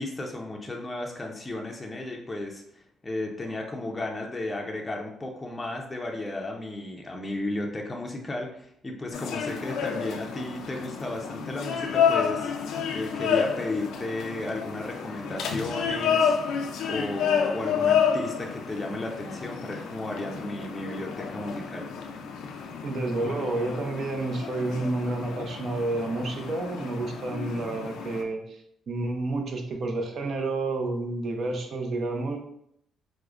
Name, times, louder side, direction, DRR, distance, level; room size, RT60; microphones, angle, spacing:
voice 1, 0.0-12.5 12.9-16.3 16.9-21.9, left 2 dB, 20° left, 0 dB, 0.5 m, -34 dB
sound 1, 9.1-28.2, left 7 dB, 85° left, 0.3 m, -30 dB
voice 2, 22.8-28.6 28.9-32.4, right 2 dB, 55° right, 4 dB, 0.5 m, -30 dB
4.5 x 2.1 x 2.4 m, 0.73 s
cardioid pair, 90°, 0 cm